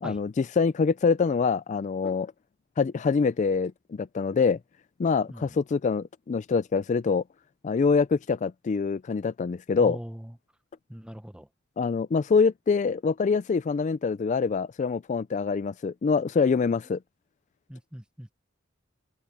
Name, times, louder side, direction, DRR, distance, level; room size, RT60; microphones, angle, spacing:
voice 1, 0.0-2.3 2.8-4.6 5.0-7.2 7.6-10.0 11.8-17.0, left 5 dB, 35° left, 0.3 m, -25 dB
voice 2, 9.8-10.4 10.9-11.5 17.7-18.3, equal, 5° right, 0.9 m, -40 dB
head